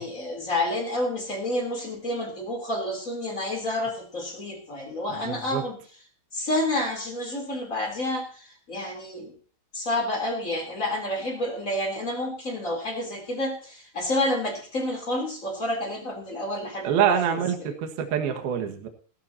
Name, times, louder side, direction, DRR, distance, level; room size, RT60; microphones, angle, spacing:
voice 1, 0.0-5.8 6.3-9.3 9.7-17.7, left 1 dB, 20° left, 2 dB, 2.7 m, -29 dB
voice 2, 5.1-5.6 16.8-18.9, right 8 dB, 60° right, 5 dB, 2.9 m, -26 dB
17.5 x 15.0 x 2.8 m, 0.42 s
omnidirectional pair, 5.9 m